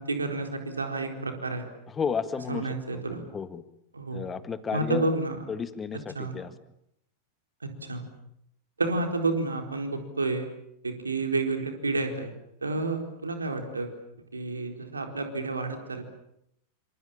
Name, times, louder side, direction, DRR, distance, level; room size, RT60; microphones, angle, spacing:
voice 1, 0.0-1.6 2.5-3.2 3.9-4.3 4.7-5.4 6.1-6.3 7.6-8.0 8.8-10.5 10.8-12.3 12.6-13.9 14.3-16.0, right 3 dB, 75° right, 4 dB, 4.3 m, -30 dB
voice 2, 1.9-3.6 4.1-5.1 5.5-6.5, left 6 dB, 20° left, 13 dB, 1.8 m, -33 dB
28.5 x 26.5 x 7.5 m, 0.78 s
figure-of-eight pair, 90°, 0 cm